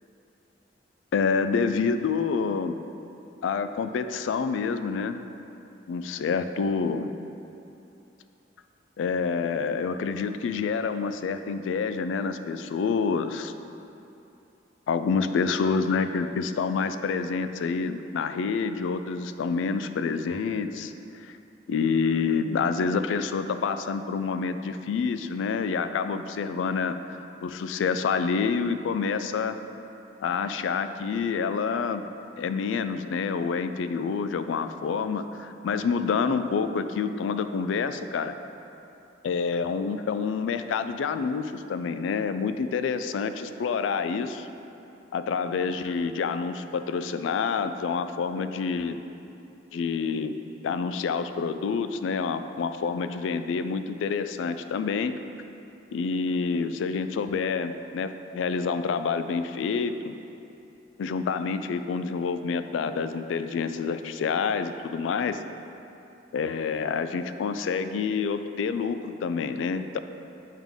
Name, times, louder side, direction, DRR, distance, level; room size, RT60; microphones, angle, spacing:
voice 1, 1.1-2.8 3.4-5.2 5.9-7.1 9.0-13.5 14.9-21.4 21.7-29.6 30.2-32.0 32.4-38.3 39.2-44.5 45.1-49.0 49.7-50.4 50.6-55.1 55.9-60.2 61.0-65.4 66.3-70.0, left 5 dB, 80° left, 10 dB, 0.3 m, -28 dB
8.9 x 3.7 x 3.6 m, 2.8 s
head